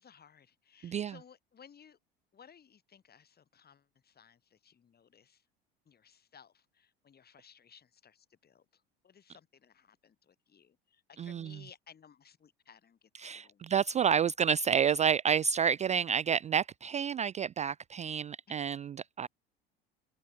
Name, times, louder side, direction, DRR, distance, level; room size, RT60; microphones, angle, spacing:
voice 1, 0.0-2.0 2.3-5.4 5.9-13.8 18.5-18.6, left 7 dB, 35° left, 7.6 m, -59 dB
voice 2, 11.2-11.5 13.2-19.3, right 7 dB, 25° right, 0.5 m, -29 dB
open air
hypercardioid pair, 70°, 29 cm